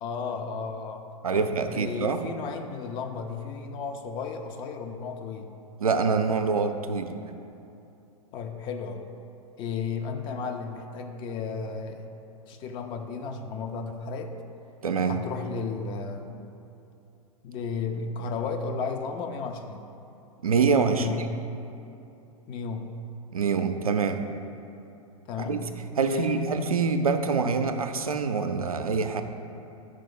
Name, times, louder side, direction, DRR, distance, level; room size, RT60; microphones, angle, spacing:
voice 1, 0.0-1.1 1.3-5.5 8.3-9.1 9.6-12.0 12.5-14.4 15.0-16.4 17.4-19.9 20.9-21.3 22.5-22.9 25.3-25.7 26.0-26.5, left 5 dB, 25° left, 5 dB, 0.4 m, -34 dB
voice 2, 1.2-2.2 5.8-7.1 14.8-15.2 20.4-21.1 23.3-24.2 25.5-25.6 26.0-29.2, right 5 dB, 75° right, 6 dB, 0.5 m, -25 dB
4.7 x 4.6 x 6.0 m, 2.8 s
figure-of-eight pair, 100°, 18 cm